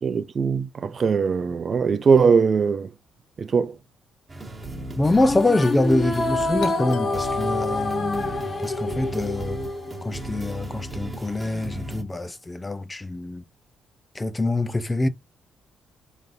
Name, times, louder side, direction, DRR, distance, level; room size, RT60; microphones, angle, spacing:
voice 1, 0.0-2.9 3.4-3.8, right 5 dB, 45° right, 0.5 m, -21 dB
sound 1, 4.3-12.0, right 1 dB, 20° right, 1.5 m, -36 dB
sound 2, 5.0-10.5, left 2 dB, 35° left, 0.9 m, -28 dB
voice 2, 5.0-9.6 10.0-13.4 14.1-15.1, left 2 dB, 20° left, 0.5 m, -25 dB
Doorbell, 6.6-11.2, left 9 dB, 85° left, 0.6 m, -38 dB
3.9 x 3.4 x 2.5 m
cardioid pair, 90°, 0 cm